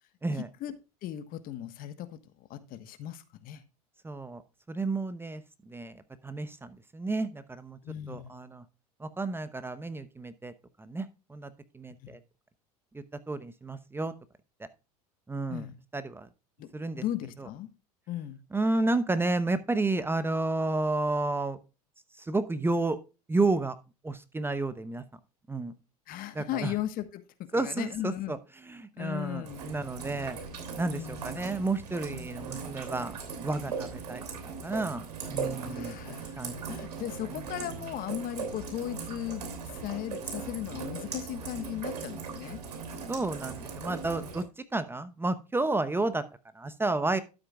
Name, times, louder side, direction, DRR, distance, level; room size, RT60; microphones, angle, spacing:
voice 1, 0.3-3.6 7.8-8.4 12.0-12.2 15.5-15.8 16.6-16.7 17.0-17.7 18.1-18.4 26.1-28.4 28.9-29.6 30.9-31.3 35.6-42.6, left 12 dB, 50° left, 1.3 m, -37 dB
voice 2, 4.0-4.4 4.7-7.8 8.1-8.6 9.0-10.5 10.8-12.2 12.9-14.1 15.3-15.7 15.9-16.3 16.7-17.0 17.4-17.5 18.5-21.6 22.2-23.0 23.3-23.8 24.0-25.0 25.5-25.7 26.3-26.7 27.5-28.4 28.7-30.4 30.8-36.0 36.4-36.5 43.1-46.2 46.5-47.2, right 2 dB, 10° right, 0.8 m, -31 dB
Rain, 29.4-44.4, right 5 dB, 85° right, 3.1 m, -39 dB
12.5 x 7.7 x 2.3 m
hypercardioid pair, 80°, 20 cm